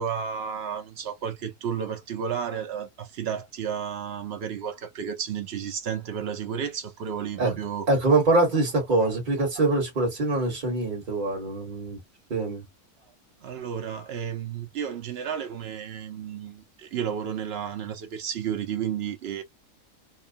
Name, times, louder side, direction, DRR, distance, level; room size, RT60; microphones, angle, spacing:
voice 1, 0.0-7.9 9.0-9.1 9.4-9.7 13.4-19.4, right 8 dB, 65° right, 0.6 m, -32 dB
voice 2, 7.9-12.0 12.3-12.6, right 2 dB, 35° right, 1.3 m, -24 dB
2.9 x 2.1 x 2.5 m
omnidirectional pair, 1.7 m